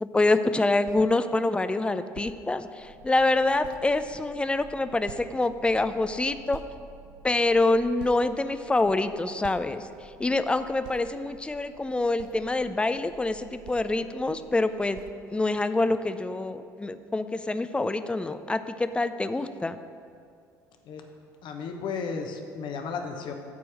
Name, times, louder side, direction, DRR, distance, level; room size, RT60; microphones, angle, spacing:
voice 1, 0.0-6.6 7.2-9.9 10.2-15.0 15.3-19.8, left 2 dB, 10° left, 11 dB, 0.4 m, -26 dB
sound 1, 0.9-1.1 2.2-2.4 3.1-3.2 3.6-3.9 5.1-5.4 6.5-6.7 7.4-7.5 8.0-8.8 9.4-9.8 10.8-11.1 12.2-12.4 13.7-13.9 14.9-15.2, right 10 dB, 55° right, 0.4 m, -45 dB
sound 2, 2.8-15.7, equal, 80° left, 0.9 m, -53 dB
voice 2, 21.4-23.3, left 5 dB, 55° left, 4 dB, 1.0 m, -34 dB
8.3 x 4.6 x 7.4 m, 2.4 s
hypercardioid pair, 60°, 10 cm